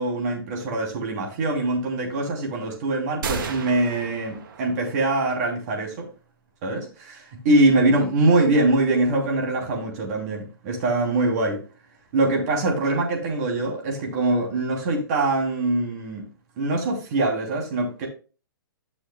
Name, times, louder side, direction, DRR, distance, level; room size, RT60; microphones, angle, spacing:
voice 1, 0.0-6.1 6.6-11.6 12.1-16.2 16.6-18.1, right 2 dB, 45° right, 3.0 m, -23 dB
sound 1, 3.2-5.1, right 5 dB, 60° right, 1.7 m, -33 dB
12.0 x 6.4 x 2.2 m
hypercardioid pair, 140°, 12 cm